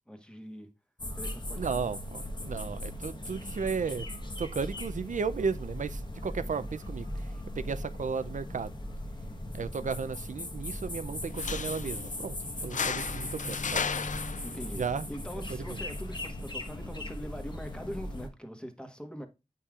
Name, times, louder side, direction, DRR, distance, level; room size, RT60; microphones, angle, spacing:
voice 1, 0.1-0.7 1.2-1.7 14.4-14.8 15.1-19.3, equal, 5° left, 1.2 m, -42 dB
sound 1, 1.0-18.3, left 1 dB, 35° left, 1.2 m, -38 dB
voice 2, 1.6-4.1 4.4-8.7 9.5-12.4 12.6-13.8 14.7-15.1 15.5-15.8, right 5 dB, 80° right, 0.4 m, -34 dB
sound 2, 11.3-18.3, left 6 dB, 75° left, 0.4 m, -38 dB
8.3 x 5.5 x 2.4 m
wide cardioid pair, 75°, 13 cm